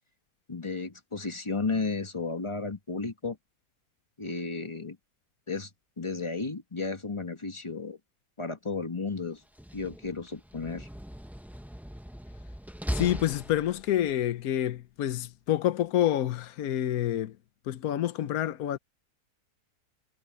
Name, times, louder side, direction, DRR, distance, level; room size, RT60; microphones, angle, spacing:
voice 1, 0.5-3.4 4.2-5.0 5.5-5.7 6.0-8.0 8.4-9.4 9.7-10.9, left 3 dB, 20° left, 1.5 m, -33 dB
Slam, 9.4-14.1, equal, ahead, 0.6 m, -39 dB
voice 2, 12.9-17.4 17.7-18.8, left 12 dB, 80° left, 1.3 m, -28 dB
omnidirectional pair, 1.5 m